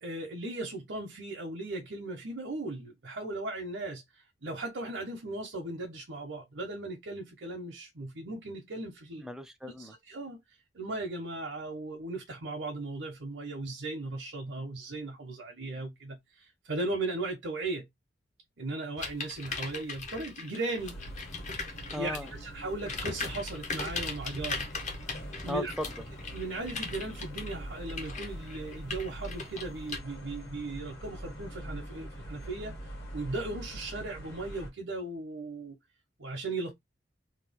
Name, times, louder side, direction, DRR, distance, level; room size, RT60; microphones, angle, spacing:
voice 1, 0.0-9.3 9.8-10.4 10.7-17.9 18.6-21.0 21.7-24.7 25.4-25.7 26.3-32.8 33.1-35.8 36.2-36.7, right 2 dB, 80° right, 0.8 m, -37 dB
voice 2, 9.2-9.9 21.9-22.3 25.5-25.9, equal, 5° right, 0.4 m, -36 dB
sound 1, 19.0-22.4 22.8-30.0, left 4 dB, 40° left, 0.7 m, -39 dB
sound 2, 20.8-34.7, right 1 dB, 60° left, 1.4 m, -43 dB
2.9 x 2.3 x 3.4 m
head